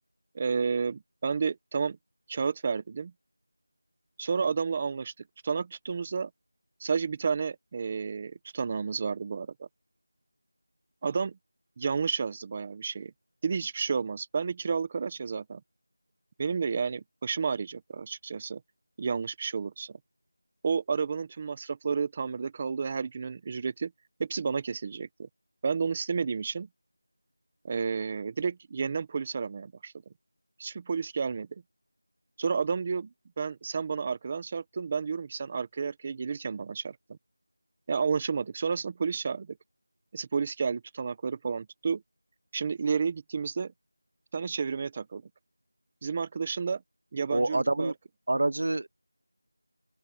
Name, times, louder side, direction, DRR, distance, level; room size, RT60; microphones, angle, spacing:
voice 1, 0.3-2.0 2.3-3.1 4.2-5.1 5.4-6.3 6.8-9.7 11.0-11.4 11.8-13.1 13.4-15.6 16.4-18.6 19.0-20.0 20.6-23.9 24.2-25.3 25.6-26.7 27.6-29.9 30.6-31.6 32.4-33.1 33.4-37.2 37.9-39.6 40.1-42.0 42.5-43.7 44.3-45.2 46.0-46.8 47.1-47.9, right 5 dB, 15° right, 1.2 m, -31 dB
voice 2, 47.3-47.9 48.3-48.9, right 2 dB, 40° right, 0.8 m, -26 dB
open air
figure-of-eight pair, 180°, 0 cm